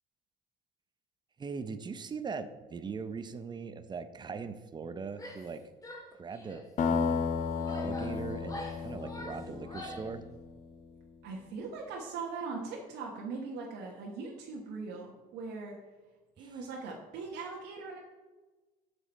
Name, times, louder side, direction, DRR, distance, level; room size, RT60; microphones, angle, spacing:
voice 1, 1.4-5.6 6.2-6.9 7.7-10.2 16.4-16.5, right 5 dB, 25° right, 11 dB, 0.6 m, -40 dB
Female speech woman speaking / Yell, 5.1-5.5 5.8-6.7 7.3-10.1, equal, 20° left, 1.8 m, -45 dB
sound 1, 6.8-10.6, left 5 dB, 45° left, 0.8 m, -33 dB
voice 2, 11.2-15.7 16.4-18.0, right 4 dB, 85° right, -2 dB, 1.2 m, -40 dB
7.2 x 7.0 x 4.1 m, 1.2 s
cardioid pair, 110°, 17 cm